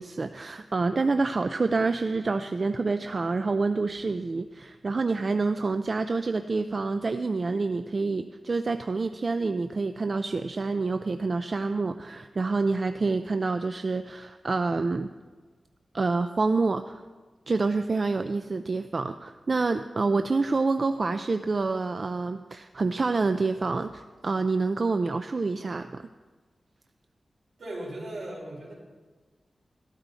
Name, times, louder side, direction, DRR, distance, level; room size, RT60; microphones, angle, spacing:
voice 1, 0.0-15.1 15.9-17.0 17.5-26.1, right 3 dB, 45° right, 9 dB, 0.4 m, -27 dB
voice 2, 27.6-28.7, right 1 dB, 75° right, -3 dB, 4.4 m, -37 dB
13.5 x 12.5 x 4.1 m, 1.4 s
wide cardioid pair, 95°, 0 cm